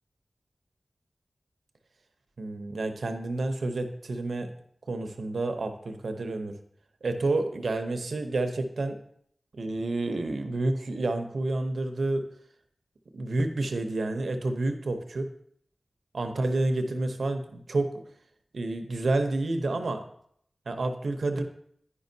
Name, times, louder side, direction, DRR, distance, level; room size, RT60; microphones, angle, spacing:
voice 1, 2.4-4.5 4.9-6.6 7.0-9.0 9.5-12.2 13.1-15.3 16.1-18.0 18.5-20.0 20.7-21.4, right 2 dB, 85° right, 6 dB, 0.7 m, -29 dB
9.8 x 5.3 x 2.7 m, 0.68 s
cardioid pair, 45°, 0 cm